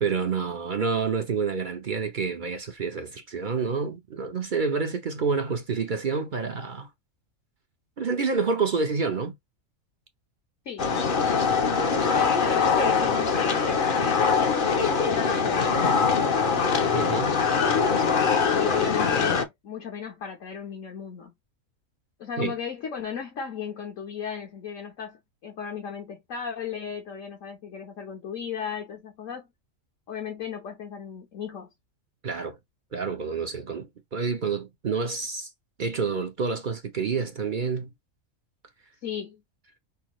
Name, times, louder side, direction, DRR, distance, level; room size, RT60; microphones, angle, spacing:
voice 1, 0.0-6.9 8.0-9.4 16.9-17.4 22.4-22.5 32.2-32.6 32.9-35.5 35.8-37.9, right 5 dB, 45° right, 0.7 m, -28 dB
sound 1, 10.8-19.4, left 5 dB, 45° left, 0.8 m, -23 dB
voice 2, 12.1-14.5 15.1-16.7 18.6-21.3 22.2-29.5 30.1-31.7 39.0-39.4, left 7 dB, 70° left, 1.4 m, -36 dB
5.6 x 2.3 x 3.0 m
omnidirectional pair, 1.4 m